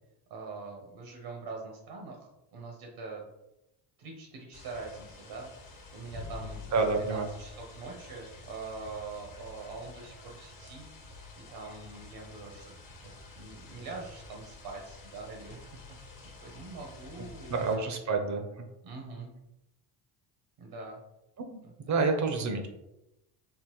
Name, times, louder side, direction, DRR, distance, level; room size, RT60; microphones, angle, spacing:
voice 1, 0.3-3.2 4.0-10.9 11.5-12.7 13.0-15.8 16.4-18.2 18.8-19.3 20.6-21.0 21.6-21.7, right 3 dB, 70° right, 0 dB, 0.9 m, -44 dB
sound 1, 4.5-17.8, left 3 dB, 40° left, 0.9 m, -49 dB
voice 2, 6.7-7.3 17.5-18.4 21.4-22.7, right 4 dB, 35° right, 5 dB, 0.6 m, -28 dB
3.7 x 2.1 x 2.9 m, 0.88 s
supercardioid pair, 80°, 49 cm